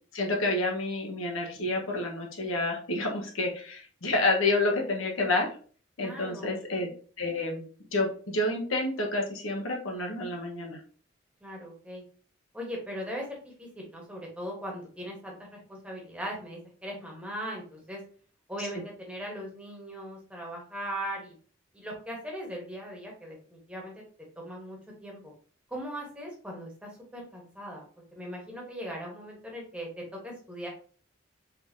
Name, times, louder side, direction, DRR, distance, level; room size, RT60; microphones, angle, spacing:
voice 1, 0.1-5.5 6.0-6.9 7.2-7.6 7.9-10.8, left 2 dB, 90° left, 0 dB, 1.2 m, -29 dB
voice 2, 6.0-6.6 11.4-12.0 12.5-18.0 18.5-21.3 21.7-23.9 24.4-25.3 25.7-27.8 28.1-29.9 30.2-30.7, equal, 5° right, -2 dB, 1.1 m, -39 dB
4.2 x 3.7 x 2.7 m, 0.43 s
head